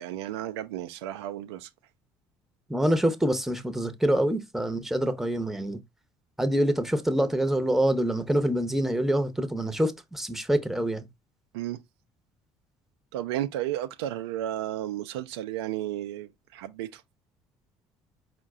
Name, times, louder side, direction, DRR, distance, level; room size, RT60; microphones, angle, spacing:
voice 1, 0.0-1.7 11.5-11.8 13.1-17.0, right 13 dB, 85° right, 0.4 m, -33 dB
voice 2, 2.7-5.8 6.4-11.1, right 1 dB, ahead, 0.7 m, -26 dB
4.4 x 2.1 x 3.7 m
hypercardioid pair, 60°, 13 cm